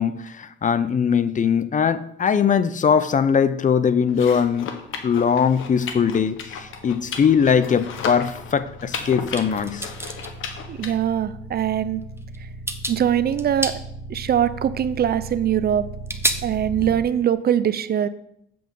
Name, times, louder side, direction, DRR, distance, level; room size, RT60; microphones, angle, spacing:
voice 1, 0.0-4.7 5.0-9.9, left 7 dB, 40° left, 0.7 m, -21 dB
sound 1, 4.1-10.9, left 6 dB, 85° left, 1.3 m, -35 dB
sound 2, 4.6-16.9, right 2 dB, 15° left, 4.7 m, -38 dB
sound 3, 9.4-10.3 11.6-11.7 12.2-12.4 12.7-13.0 13.3-13.8 14.8-14.9 16.1-16.3, right 2 dB, 10° right, 0.9 m, -27 dB
voice 2, 10.7-12.0 12.4-12.5 12.9-13.7 14.1-15.9 16.4-18.1, right 9 dB, 50° right, 0.6 m, -22 dB
7.8 x 7.6 x 5.3 m
cardioid pair, 90°, 20 cm